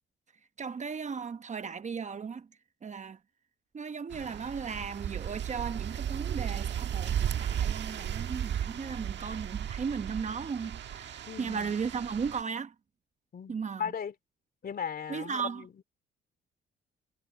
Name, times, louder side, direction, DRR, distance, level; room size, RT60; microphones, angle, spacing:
voice 1, 0.6-2.5 2.8-3.2 3.7-12.7 13.5-13.9 15.1-15.6, right 6 dB, 35° right, 1.0 m, -36 dB
sound 1, 4.1-12.4, right 9 dB, 65° right, 1.4 m, -35 dB
voice 2, 11.3-11.7 13.3-14.1 14.6-15.8, left 7 dB, 50° left, 3.2 m, -37 dB
cardioid pair, 90°, 20 cm